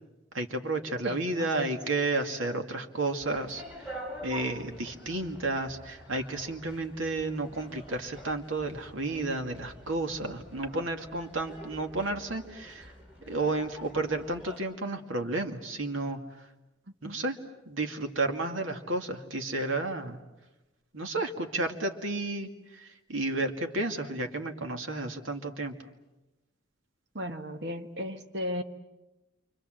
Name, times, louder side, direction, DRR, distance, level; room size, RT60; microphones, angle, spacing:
voice 1, 0.3-3.6 4.2-12.9 13.3-16.2 17.0-17.4 17.7-20.2 20.9-25.7, right 2 dB, 90° right, 2.2 m, -32 dB
voice 2, 1.0-1.8 17.0-17.2 27.1-28.6, equal, 60° right, 1.5 m, -36 dB
sound 1, 3.2-14.6, equal, 5° right, 5.1 m, -47 dB
28.5 x 25.5 x 7.8 m
head